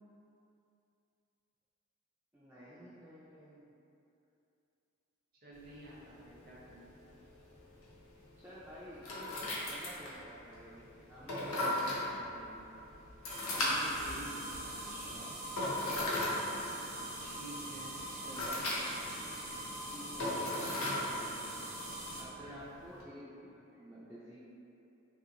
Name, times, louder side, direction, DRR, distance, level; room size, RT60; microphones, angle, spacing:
voice 1, 2.3-3.7 8.4-12.6 18.2-18.7 19.9-21.4 22.2-24.4, equal, 10° right, -11 dB, 0.3 m, -51 dB
voice 2, 5.4-6.9 13.4-15.4 17.2-18.7 22.4-22.6, right 1 dB, 45° right, -6 dB, 0.6 m, -50 dB
sound 1, 5.5-23.0, left 1 dB, 75° left, 0.6 m, -39 dB
sound 2, 13.3-22.2, right 1 dB, 80° right, 0.9 m, -43 dB
3.2 x 2.5 x 2.7 m, 2.7 s
head